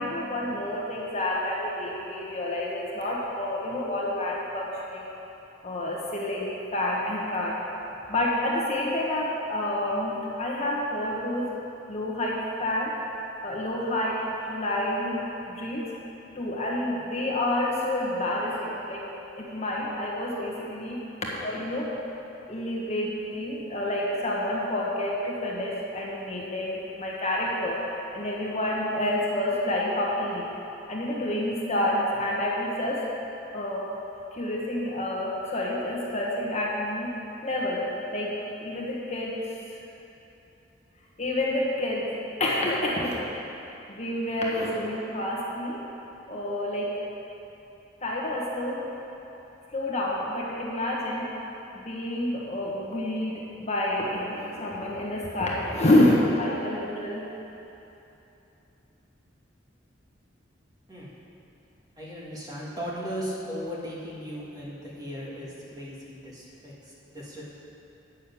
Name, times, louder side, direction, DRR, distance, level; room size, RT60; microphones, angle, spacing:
voice 1, 0.0-5.1 5.6-7.6 8.1-11.5 11.9-12.9 13.4-15.9 16.3-19.0 19.4-22.0 22.5-27.8 28.1-30.5 30.9-33.0 33.5-33.9 34.3-37.1 37.4-37.8 38.1-39.4 41.2-42.1 42.4-43.2 43.9-45.8 46.3-46.9 48.0-48.9 49.7-51.3 51.7-57.2, left 1 dB, 35° left, -4 dB, 1.3 m, -28 dB
voice 2, 62.0-67.4, equal, 20° right, -6 dB, 1.8 m, -37 dB
9.5 x 6.5 x 7.0 m, 3.0 s
head